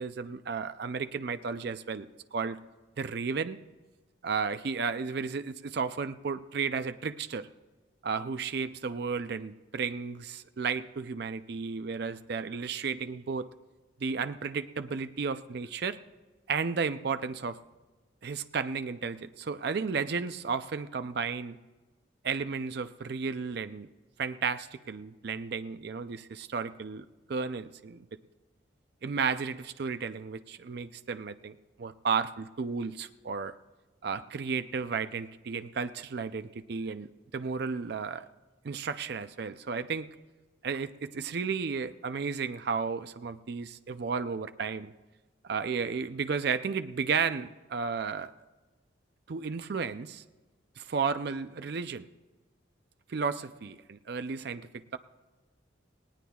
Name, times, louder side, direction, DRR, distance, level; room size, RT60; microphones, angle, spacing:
voice 1, 0.0-2.6 3.0-3.6 4.2-7.5 8.0-13.5 14.0-16.0 16.5-17.6 18.2-21.6 22.2-23.9 24.2-28.1 29.0-33.5 34.0-37.1 37.3-38.3 38.6-40.1 40.6-44.9 45.4-48.3 49.3-50.2 50.8-52.1 53.1-55.0, right 5 dB, 55° right, 11 dB, 0.4 m, -33 dB
19.0 x 17.5 x 2.3 m, 1.2 s
head